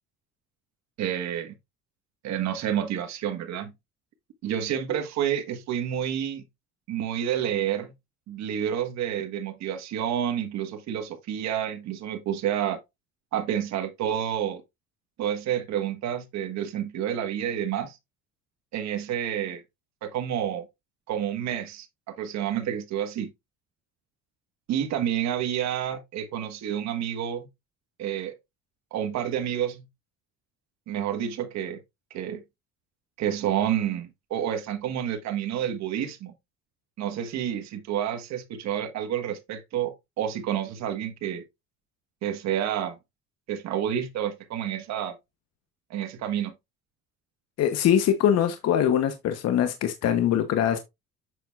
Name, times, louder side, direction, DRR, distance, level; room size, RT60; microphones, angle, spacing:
voice 1, 1.0-1.5 2.2-3.7 4.4-6.4 6.9-7.9 8.3-12.8 13.3-14.6 15.2-18.0 18.7-19.6 20.0-20.7 21.1-23.3 24.7-27.5 28.0-28.3 28.9-29.9 30.9-31.8 32.1-32.4 33.2-36.3 37.0-41.4 42.2-43.0 43.5-45.1 45.9-46.5, right 10 dB, 60° right, 1.5 m, -29 dB
voice 2, 47.6-50.8, left 9 dB, 55° left, 1.0 m, -23 dB
7.8 x 5.9 x 2.4 m
cardioid pair, 125°, 31 cm